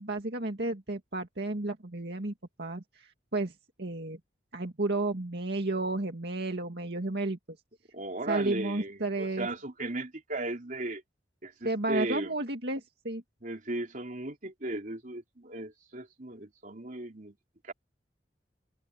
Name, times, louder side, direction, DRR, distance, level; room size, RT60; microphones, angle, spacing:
voice 1, 0.0-3.5 3.8-4.2 4.5-7.4 8.3-9.5 11.6-13.2, right 2 dB, 65° right, 2.2 m, -32 dB
voice 2, 7.9-11.0 11.4-12.4 13.4-17.3 17.6-17.7, right 2 dB, 50° right, 3.6 m, -36 dB
head